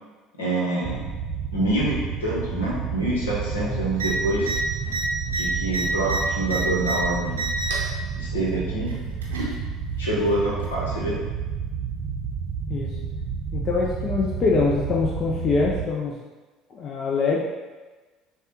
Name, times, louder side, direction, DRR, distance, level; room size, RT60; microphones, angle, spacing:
voice 1, 0.4-1.0 1.5-4.5 5.3-7.4 8.1-8.9 10.0-11.2, right 1 dB, 75° left, -5 dB, 1.1 m, -26 dB
sound 1, 0.8-15.9, right 6 dB, 45° right, 0.4 m, -31 dB
sound 2, 3.9-4.1 4.4-4.6 4.9-7.0 7.3-7.9 8.9-9.6 10.6-10.7, right 2 dB, 80° right, 0.7 m, -28 dB
voice 2, 13.5-16.2 16.7-17.4, left 4 dB, 40° left, -2 dB, 0.5 m, -24 dB
6.5 x 2.3 x 2.9 m, 1.3 s
figure-of-eight pair, 60°, 0 cm